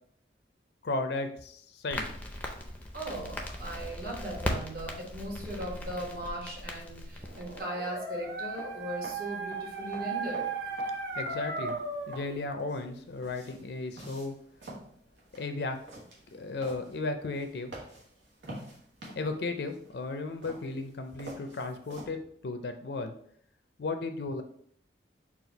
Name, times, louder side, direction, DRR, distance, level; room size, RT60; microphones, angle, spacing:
voice 1, 0.8-2.1 11.2-11.8 12.1-14.4 15.3-15.8 16.3-17.8 19.1-23.1 23.8-24.4, left 3 dB, 65° left, 7 dB, 0.4 m, -35 dB
Crackle, 1.9-7.6, left 1 dB, 10° left, 0.4 m, -38 dB
voice 2, 2.9-10.5, right 1 dB, 55° right, -3 dB, 1.3 m, -38 dB
Dog, 7.2-12.3, right 3 dB, 70° right, 0.7 m, -36 dB
sound 1, 8.2-22.1, right 2 dB, 90° right, 1.2 m, -49 dB
4.2 x 2.3 x 3.9 m, 0.63 s
head